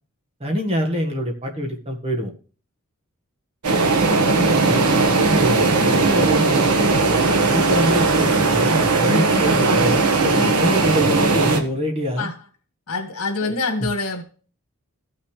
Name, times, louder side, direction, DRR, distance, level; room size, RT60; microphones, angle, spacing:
voice 1, 0.4-2.3 4.6-5.7 5.9-9.9 10.2-12.3 13.4-13.5, equal, 25° right, 1.6 m, -25 dB
sound 1, 3.6-11.6, right 3 dB, 85° right, 1.3 m, -18 dB
voice 2, 4.4-4.8 9.0-9.6 10.3-10.6 12.2-12.3 12.9-14.2, left 2 dB, 80° left, 1.8 m, -26 dB
15.0 x 6.0 x 3.2 m
head